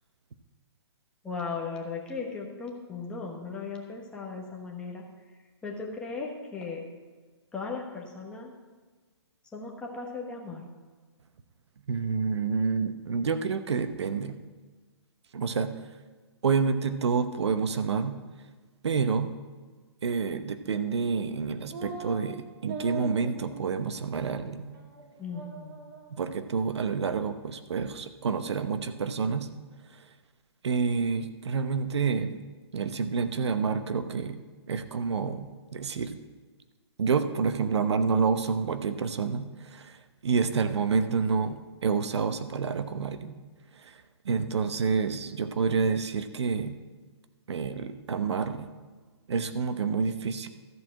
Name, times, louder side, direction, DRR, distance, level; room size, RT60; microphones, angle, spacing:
voice 1, 1.2-5.0 5.6-6.8 7.5-8.5 9.5-10.7 25.2-25.7, left 4 dB, 5° left, -2 dB, 1.1 m, -37 dB
voice 2, 11.9-14.3 15.3-15.7 16.4-18.2 18.8-19.3 20.0-24.7 26.1-29.5 29.9-30.0 30.6-32.4 32.7-36.2 37.0-40.0 40.2-43.4 43.7-44.0 44.2-46.8 47.5-48.7 49.3-50.5, right 5 dB, 75° right, 10 dB, 0.9 m, -28 dB
sound 1, 21.7-22.2 22.6-23.8 24.2-24.3 24.7-25.0 25.3-26.1, right 3 dB, 45° right, 2.2 m, -40 dB
14.0 x 4.7 x 7.5 m, 1.4 s
hypercardioid pair, 160°, 14 cm